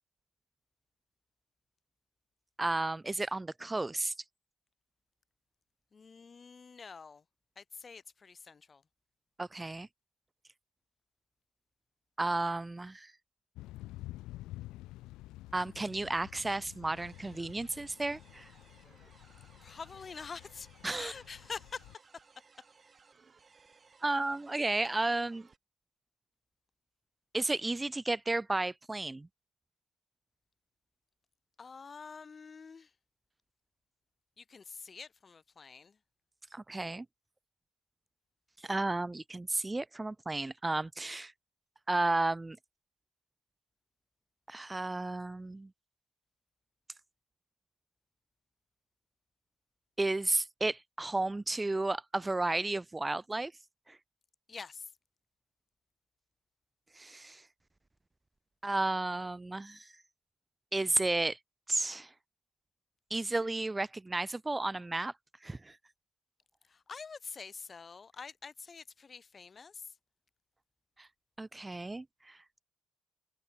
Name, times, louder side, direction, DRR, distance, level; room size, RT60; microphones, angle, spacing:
voice 1, 2.6-4.1 9.4-9.9 12.2-13.1 15.5-18.5 20.8-21.1 24.0-25.5 27.3-29.3 36.5-37.1 38.6-41.3 41.9-42.6 44.5-45.7 50.0-53.5 53.9-54.0 57.0-57.4 58.6-59.9 60.7-61.4 61.7-62.1 63.1-65.1 65.4-65.8 71.0-71.1 71.4-72.4, right 2 dB, 15° right, 0.5 m, -33 dB
voice 2, 5.9-7.2 7.6-8.8 19.6-20.7 20.9-21.8 31.6-32.9 34.4-36.0 54.5-54.8 66.7-69.8, left 5 dB, 35° left, 0.8 m, -46 dB
Thunder / Rain, 13.6-22.0, left 17 dB, 85° left, 0.8 m, -50 dB
sound 1, 16.9-25.6, right 5 dB, 35° right, 7.1 m, -62 dB
supercardioid pair, 80°, 0 cm